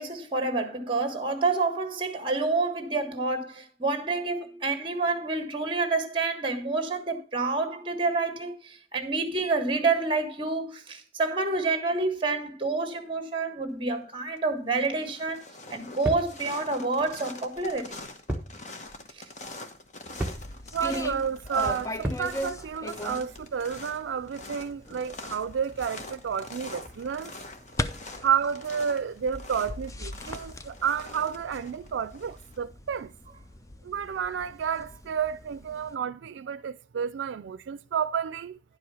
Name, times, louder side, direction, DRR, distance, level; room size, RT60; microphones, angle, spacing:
voice 1, 0.0-15.4 15.7-18.0 19.1-19.2, right 3 dB, 30° right, 1.5 m, -28 dB
sound 1, 14.0-14.4 14.7-32.6, left 2 dB, 40° left, 1.1 m, -44 dB
sound 2, 16.0-16.4 18.3-18.6 18.9-19.0 20.2-20.5 22.0-22.3, right 1 dB, 10° right, 1.1 m, -31 dB
sound 3, 20.1-36.0, left 1 dB, 15° left, 0.4 m, -40 dB
voice 2, 20.7-27.3 28.2-33.1 33.8-38.6, right 7 dB, 85° right, 0.4 m, -31 dB
10.5 x 4.8 x 5.6 m
head